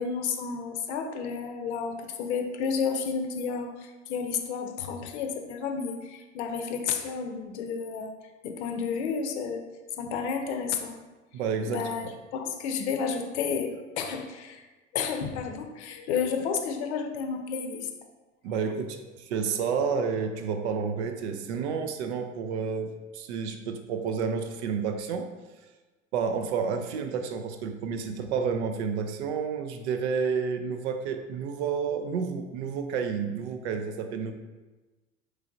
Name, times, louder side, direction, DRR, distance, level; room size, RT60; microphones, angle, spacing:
voice 1, 0.0-8.1 8.4-9.7 10.0-11.0 11.7-14.6 14.9-17.9, left 6 dB, 60° left, 5 dB, 0.6 m, -31 dB
voice 2, 11.3-11.8 18.4-25.3 26.1-34.3, right 6 dB, 60° right, 7 dB, 0.5 m, -30 dB
4.6 x 3.1 x 2.5 m, 1.2 s
figure-of-eight pair, 70°, 38 cm